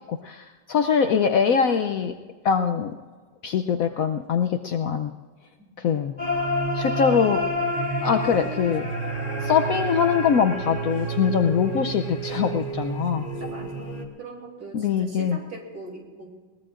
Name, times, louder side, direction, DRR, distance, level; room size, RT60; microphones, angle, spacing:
voice 1, 0.1-2.1 2.4-2.9 3.4-5.1 5.8-6.1 6.7-7.4 8.0-8.9 9.4-13.3 14.7-15.4, left 7 dB, 65° left, 6 dB, 0.9 m, -23 dB
sound 1, 6.2-14.0, equal, 30° left, 1.7 m, -28 dB
voice 2, 13.4-16.3, right 2 dB, 60° right, 0 dB, 3.4 m, -41 dB
21.5 x 19.5 x 2.5 m, 1.5 s
omnidirectional pair, 1.9 m